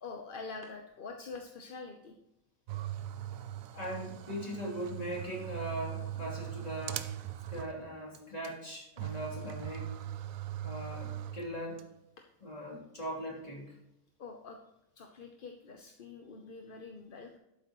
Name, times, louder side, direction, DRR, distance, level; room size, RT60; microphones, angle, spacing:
voice 1, 0.0-2.1 14.2-14.6 15.0-17.4, left 4 dB, 45° left, 3 dB, 0.9 m, -45 dB
sound 1, 2.7-7.9 8.1-8.2 8.4-8.5 9.0-11.8, right 12 dB, 75° right, 1.0 m, -40 dB
voice 2, 3.7-7.0 7.5-9.9 10.6-11.9 12.4-13.8, equal, 30° left, -3 dB, 3.2 m, -40 dB
12.0 x 9.0 x 3.1 m, 0.89 s
omnidirectional pair, 1.4 m